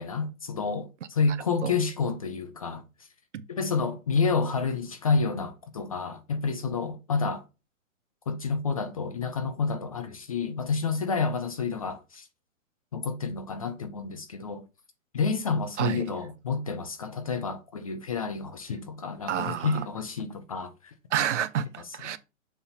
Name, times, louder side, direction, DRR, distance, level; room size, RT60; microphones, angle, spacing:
voice 1, 0.0-2.8 3.5-7.4 8.3-12.3 12.9-14.6 15.1-20.9, left 4 dB, 25° left, 0.5 m, -29 dB
voice 2, 15.8-16.1 19.3-19.9 21.1-22.2, right 9 dB, 60° right, 0.9 m, -29 dB
7.0 x 3.6 x 5.4 m
hypercardioid pair, 165°, 40 cm